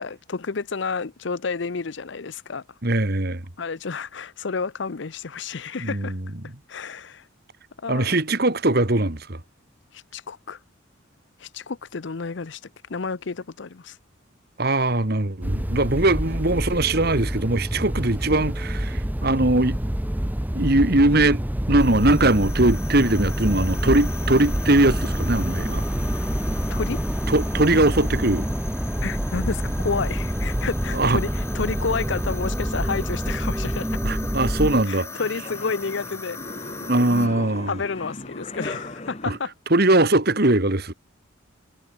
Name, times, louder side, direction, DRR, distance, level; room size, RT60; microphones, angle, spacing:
voice 1, 0.0-2.6 3.6-6.2 6.4-7.3 7.8-8.2 9.9-10.6 11.4-14.0 26.7-27.0 29.0-34.2 34.9-36.7 37.7-39.5, left 4 dB, 60° left, 0.7 m, -30 dB
voice 2, 2.8-3.4 5.8-6.2 7.9-9.4 14.6-19.8 20.5-21.4 21.7-25.8 27.3-28.5 30.9-31.2 34.0-35.1 36.8-37.8 39.3-39.4 39.7-40.9, right 2 dB, 50° right, 2.0 m, -21 dB
sound 1, 15.4-34.8, equal, 10° right, 0.8 m, -27 dB
sound 2, 21.8-37.3, left 4 dB, 15° left, 3.1 m, -40 dB
sound 3, 33.4-39.4, left 1 dB, 30° left, 3.1 m, -38 dB
head